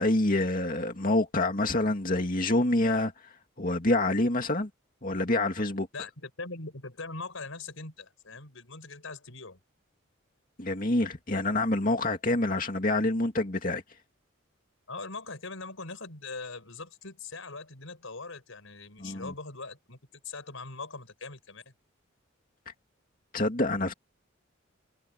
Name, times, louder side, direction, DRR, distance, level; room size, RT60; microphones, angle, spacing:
voice 1, 0.0-4.7 5.0-5.9 10.6-13.8 19.0-19.3 22.7-22.8 23.3-23.9, left 2 dB, 40° left, 2.4 m, -27 dB
voice 2, 5.9-9.6 14.9-21.6, left 3 dB, 80° left, 4.7 m, -41 dB
head